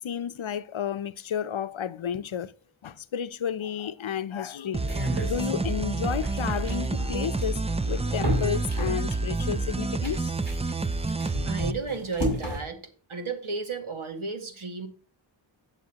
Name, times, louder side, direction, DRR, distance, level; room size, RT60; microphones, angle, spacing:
voice 1, 0.0-2.5 2.8-10.3, left 8 dB, 75° left, 0.7 m, -32 dB
sound 1, 4.7-11.7, right 3 dB, 15° right, 0.4 m, -29 dB
sound 2, 4.8-12.6, equal, 55° right, 6.2 m, -34 dB
voice 2, 11.5-12.8 13.1-14.9, right 4 dB, 85° right, 2.1 m, -33 dB
17.0 x 6.7 x 2.9 m
wide cardioid pair, 75°, 48 cm